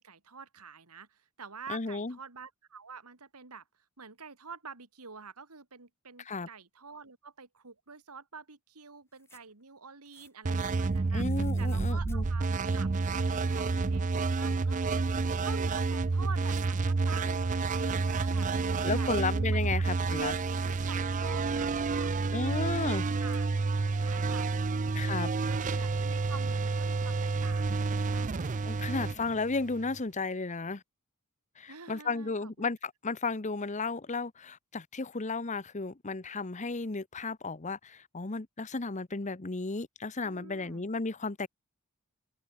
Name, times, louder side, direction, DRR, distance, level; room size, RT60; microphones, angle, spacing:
voice 1, 0.0-3.6 4.0-11.2 11.6-12.5 12.7-12.9 13.3-19.1 19.5-19.7 20.6-25.1 25.5-29.0 31.7-32.7 40.2-40.9, right 5 dB, 90° right, 2.5 m, -48 dB
voice 2, 1.7-2.1 6.3-6.5 11.1-12.3 18.8-20.4 22.3-23.0 24.9-25.3 28.6-30.8 31.6-41.5, left 3 dB, 35° left, 0.9 m, -34 dB
sound 1, 9.0-9.6 10.1-12.2 13.4-14.0 14.3-15.5 16.4-16.7 17.6-19.2 19.9-21.5 22.5-23.8, left 4 dB, 10° left, 2.6 m, -62 dB
sound 2, 10.4-30.0, right 4 dB, 35° right, 0.5 m, -30 dB
open air
head